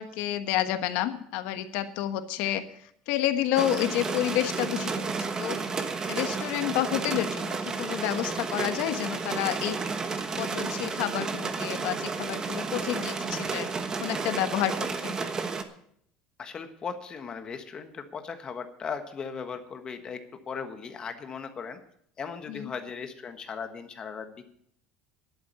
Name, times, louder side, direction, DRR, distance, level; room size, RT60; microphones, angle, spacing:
voice 1, 0.0-2.6 3.1-5.1 5.4-5.6 6.1-9.8 10.4-13.7 14.0-15.1 22.5-22.7, left 12 dB, 70° left, 10 dB, 1.2 m, -29 dB
sound 1, 3.5-15.6, right 4 dB, 25° right, 1.2 m, -32 dB
voice 2, 16.4-20.2 20.5-21.8 22.2-24.5, left 6 dB, 30° left, 7 dB, 1.4 m, -38 dB
11.0 x 8.4 x 8.4 m, 0.68 s
cardioid pair, 135°, 3 cm